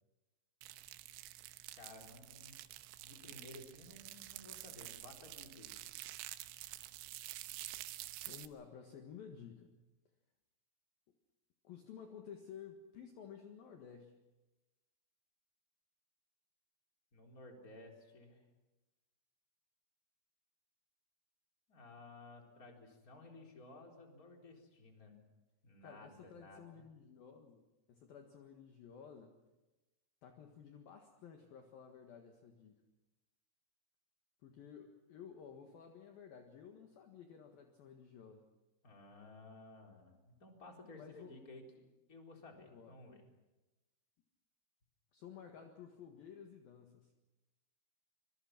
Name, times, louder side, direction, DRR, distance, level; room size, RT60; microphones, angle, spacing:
sound 1, 0.6-8.5, right 16 dB, 85° right, 3.5 m, -49 dB
voice 1, 1.8-2.6 3.0-5.7 17.1-18.5 21.7-25.2 25.6-26.8 38.8-41.7 42.1-43.2, left 2 dB, 20° left, 2 dB, 3.8 m, -55 dB
voice 2, 8.3-9.7 11.6-14.2 25.8-29.3 30.2-32.8 34.4-38.4 40.9-41.4 42.7-43.0 45.1-47.1, left 7 dB, 60° left, 4 dB, 2.9 m, -54 dB
25.5 x 25.0 x 6.0 m, 1.1 s
omnidirectional pair, 5.7 m